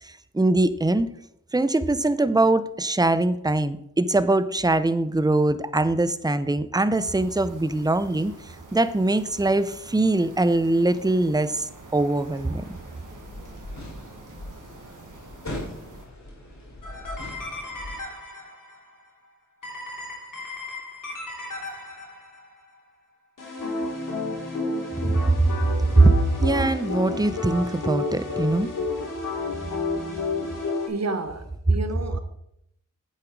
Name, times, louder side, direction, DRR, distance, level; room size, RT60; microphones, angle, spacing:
voice 1, 0.0-1.1 1.5-8.3 8.7-12.8 25.0-25.5 25.9-28.7, right 2 dB, 10° right, 0.7 m, -22 dB
sound 1, 7.0-16.1, right 3 dB, 80° right, 1.8 m, -46 dB
sound 2, 12.6-18.0, left 1 dB, 60° left, 2.8 m, -40 dB
sound 3, 16.8-18.8 19.6-22.5 23.4-30.9, left 3 dB, 80° left, 3.1 m, -31 dB
voice 2, 30.9-32.2, right 2 dB, 55° right, 1.2 m, -30 dB
8.7 x 7.2 x 4.7 m
cardioid pair, 45°, 31 cm